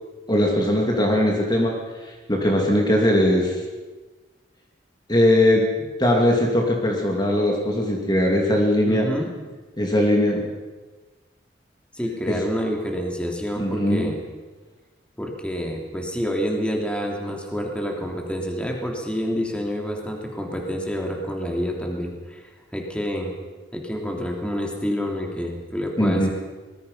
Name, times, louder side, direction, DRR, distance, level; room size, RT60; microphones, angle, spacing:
voice 1, 0.3-1.7 2.3-3.6 5.1-5.7 6.0-9.1 9.8-10.5 12.3-12.4 13.6-14.1 26.0-26.3, left 1 dB, 25° left, 0 dB, 2.7 m, -20 dB
voice 2, 8.8-9.3 11.9-14.2 15.2-23.3 23.7-26.3, equal, 5° left, 1 dB, 3.0 m, -28 dB
24.0 x 20.5 x 5.6 m, 1.3 s
head